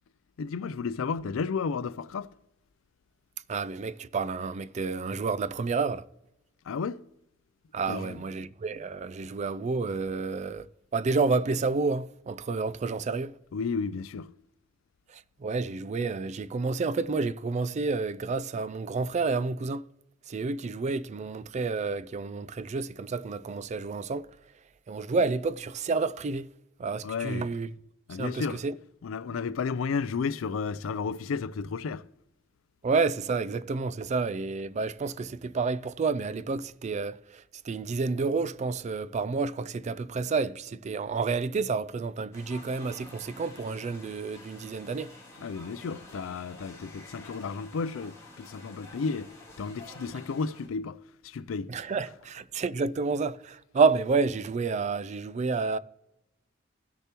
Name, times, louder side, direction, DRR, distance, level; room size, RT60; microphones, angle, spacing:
voice 1, 0.4-2.3 6.6-7.0 7.9-8.2 13.5-14.3 27.0-27.5 28.1-28.6 29.0-32.1 45.4-49.3 49.6-51.7, left 5 dB, 85° left, 0.4 m, -33 dB
voice 2, 3.5-6.0 7.7-10.7 10.9-13.3 15.4-19.8 20.3-24.3 24.9-26.5 26.8-27.7 28.2-28.7 32.8-45.1 51.7-55.8, right 4 dB, 35° right, 0.3 m, -29 dB
sound 1, 42.3-50.7, left 2 dB, 15° left, 2.4 m, -50 dB
16.5 x 6.7 x 2.9 m
head